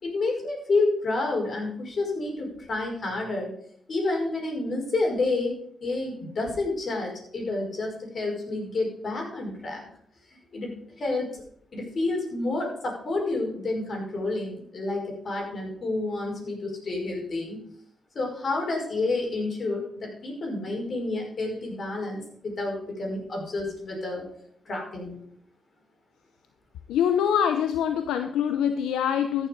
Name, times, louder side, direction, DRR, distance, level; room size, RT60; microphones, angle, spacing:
voice 1, 0.0-3.5 3.9-5.5 5.8-9.8 10.5-11.4 11.7-17.6 18.2-24.3 24.7-25.2, left 2 dB, 55° left, 0 dB, 5.3 m, -29 dB
voice 2, 26.9-29.5, left 8 dB, 85° left, 8 dB, 0.6 m, -24 dB
14.0 x 7.2 x 5.3 m, 0.65 s
supercardioid pair, 45°, 0 cm